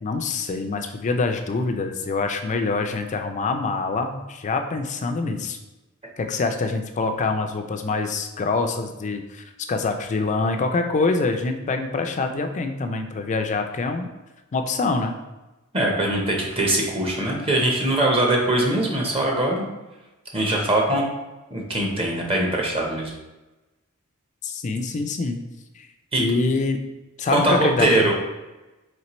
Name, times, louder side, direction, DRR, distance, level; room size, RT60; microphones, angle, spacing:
voice 1, 0.0-5.6 6.2-14.1 14.5-15.2 24.4-25.4 25.8-25.9 26.2-26.8 27.2-28.1, left 3 dB, 35° left, 6 dB, 0.4 m, -25 dB
voice 2, 15.7-19.7 20.3-21.0 21.5-23.1 26.1-26.2 27.3-28.1, right 1 dB, 25° right, -1 dB, 0.7 m, -22 dB
4.2 x 3.2 x 3.0 m, 1.1 s
head